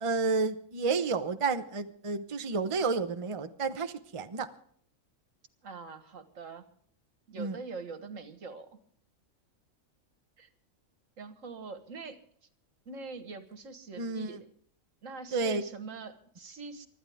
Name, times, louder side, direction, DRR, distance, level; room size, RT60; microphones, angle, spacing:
voice 1, 0.0-4.5 7.4-7.6 14.0-14.4 15.3-15.6, right 4 dB, 30° right, 8 dB, 0.8 m, -31 dB
voice 2, 5.6-6.7 7.3-8.8 10.4-10.5 11.2-12.2 12.9-14.5 15.0-16.9, right 4 dB, 70° right, 9 dB, 1.8 m, -43 dB
24.5 x 13.0 x 3.5 m, 0.62 s
omnidirectional pair, 1.4 m